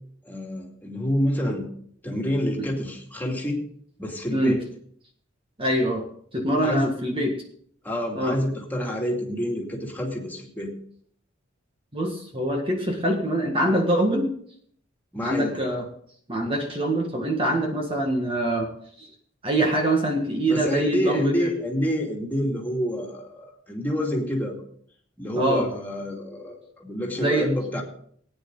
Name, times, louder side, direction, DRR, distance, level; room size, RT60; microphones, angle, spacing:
voice 1, 0.2-1.7 2.0-3.6 4.0-4.6 6.6-6.9 7.8-10.7 15.1-15.6 20.5-24.6 25.2-27.8, equal, 10° left, -1 dB, 2.6 m, -28 dB
voice 2, 5.6-6.0 6.3-7.3 8.1-8.4 11.9-14.3 15.2-15.9 16.3-18.7 19.0-19.1 19.4-21.5 25.3-25.7 27.2-27.5, right 1 dB, 25° right, 1 dB, 1.7 m, -24 dB
18.5 x 9.8 x 3.9 m, 0.62 s
head